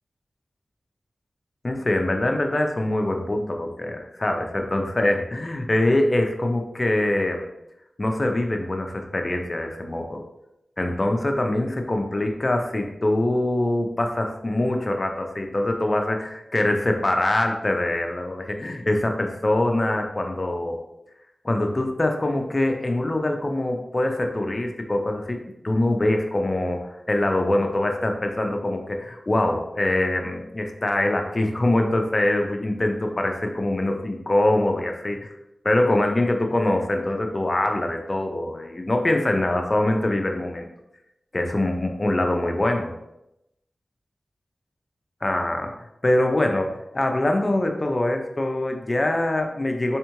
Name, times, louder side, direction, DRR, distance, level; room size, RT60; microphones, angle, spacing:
voice 1, 1.6-7.5 8.0-10.2 10.8-20.8 21.4-25.4 25.6-35.3 35.6-40.7 41.3-42.9 45.2-45.7 46.0-50.0, left 1 dB, 40° left, 3 dB, 0.6 m, -24 dB
3.6 x 3.3 x 3.0 m, 0.88 s
cardioid pair, 50°, 0 cm